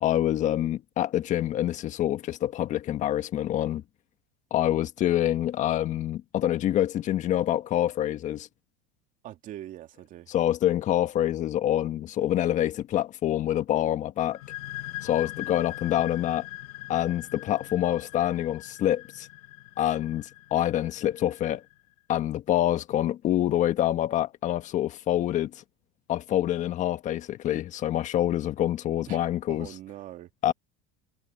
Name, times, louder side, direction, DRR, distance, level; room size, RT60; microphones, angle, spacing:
voice 1, 0.0-3.8 4.5-8.5 10.3-14.4 15.0-16.5 16.9-19.3 19.8-21.6 22.1-25.6 26.1-29.7 30.4-30.5, left 12 dB, 40° left, 1.4 m, -26 dB
voice 2, 9.2-10.3 29.1-29.2 29.5-30.5, right 13 dB, 45° right, 2.4 m, -42 dB
sound 1, 14.3-21.7, left 19 dB, 75° left, 1.4 m, -42 dB
supercardioid pair, 115°, 19 cm